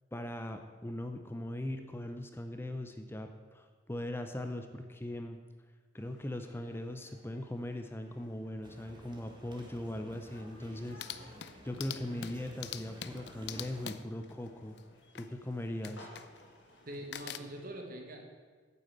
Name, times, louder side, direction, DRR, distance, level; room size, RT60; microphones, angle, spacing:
voice 1, 0.1-5.4 5.9-11.3 11.6-14.8 15.1-16.1, left 1 dB, 15° left, 6 dB, 0.6 m, -40 dB
sound 1, 5.9-17.7, left 1 dB, 90° left, 2.6 m, -59 dB
sound 2, 8.6-13.9, equal, 25° right, 1.7 m, -54 dB
sound 3, 9.8-9.9 10.3-10.4 10.7-15.3 15.8-16.6 16.9-17.4, left 9 dB, 65° left, 0.5 m, -45 dB
voice 2, 16.9-18.3, right 1 dB, 50° right, 3 dB, 1.8 m, -43 dB
9.0 x 8.5 x 7.8 m, 1.5 s
head